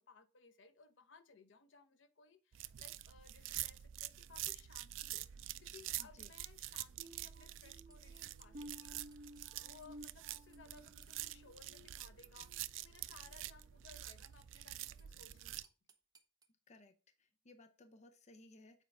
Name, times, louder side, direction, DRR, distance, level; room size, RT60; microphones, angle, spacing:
voice 1, 0.0-5.3 5.6-15.6, left 5 dB, 75° left, 0.9 m, -62 dB
sound 1, 2.5-15.6, right 14 dB, 85° right, 0.4 m, -47 dB
voice 2, 6.0-6.3 16.7-16.9 17.2-18.8, left 2 dB, 35° left, 0.6 m, -61 dB
sound 2, 7.0-12.6 13.1-13.3 13.9-14.0, equal, 45° right, 0.9 m, -56 dB
sound 3, 7.9-11.1 13.5-13.6 13.9-16.5, right 5 dB, 20° right, 0.7 m, -68 dB
7.4 x 4.6 x 3.4 m
head